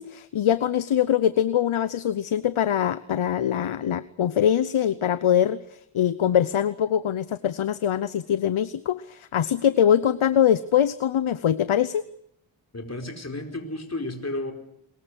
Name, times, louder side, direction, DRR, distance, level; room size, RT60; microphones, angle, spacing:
voice 1, 0.0-12.0, left 9 dB, 75° left, 15 dB, 0.9 m, -23 dB
voice 2, 12.7-14.5, left 2 dB, 30° left, 4 dB, 4.7 m, -32 dB
22.5 x 21.0 x 8.0 m, 0.76 s
wide cardioid pair, 70°, 49 cm